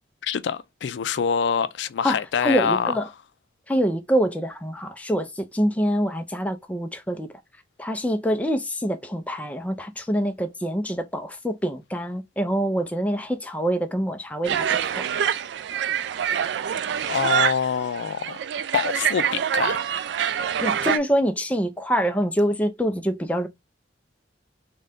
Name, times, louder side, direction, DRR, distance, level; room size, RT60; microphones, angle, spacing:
voice 1, 0.2-2.9 17.1-18.4 18.7-19.8, left 7 dB, 75° left, 0.4 m, -25 dB
voice 2, 2.0-3.0 3.7-7.3 7.8-15.1 20.6-23.5, equal, 10° left, 0.4 m, -25 dB
sound 1, 14.4-21.0, right 8 dB, 70° right, 0.3 m, -25 dB
3.8 x 2.2 x 3.5 m
head